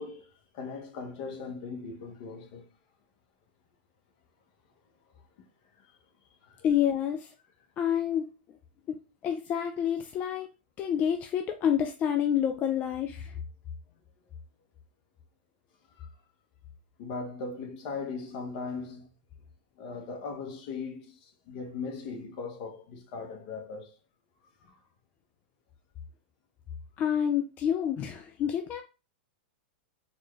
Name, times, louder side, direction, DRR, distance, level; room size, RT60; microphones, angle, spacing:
voice 1, 0.0-2.6 5.4-5.5 5.8-5.9 6.4-6.7 16.0-16.2 17.0-19.1 19.8-23.9 24.6-24.7, left 4 dB, 50° left, 1.0 m, -39 dB
voice 2, 6.6-7.3 7.8-8.3 8.9-9.0 9.2-10.5 10.8-13.3 27.0-28.8, left 9 dB, 30° left, 0.3 m, -28 dB
4.1 x 2.3 x 3.1 m
hypercardioid pair, 130°, 6 cm